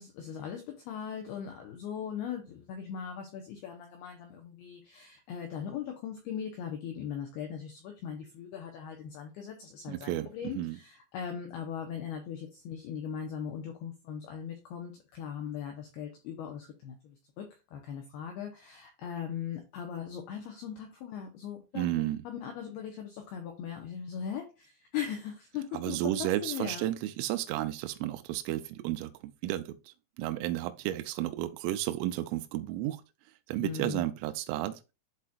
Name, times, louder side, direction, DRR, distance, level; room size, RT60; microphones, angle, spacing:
voice 1, 0.0-26.9 33.6-34.0, left 8 dB, 90° left, 2.2 m, -39 dB
voice 2, 9.9-10.3 10.5-10.8 21.7-22.2 25.7-29.8 30.2-33.0 33.5-34.8, right 14 dB, 85° right, 3.1 m, -32 dB
11.0 x 4.3 x 2.3 m
omnidirectional pair, 5.8 m